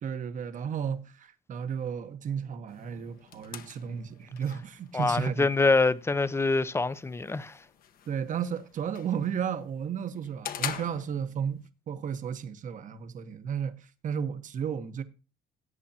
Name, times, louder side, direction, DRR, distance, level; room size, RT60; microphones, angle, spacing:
voice 1, 0.0-5.5 8.1-15.0, right 7 dB, 50° right, 1.3 m, -33 dB
sound 1, 2.7-11.7, left 9 dB, 60° left, 1.1 m, -44 dB
voice 2, 4.9-7.6, left 3 dB, 15° left, 0.6 m, -25 dB
17.5 x 8.4 x 2.9 m
cardioid pair, 110°, 17 cm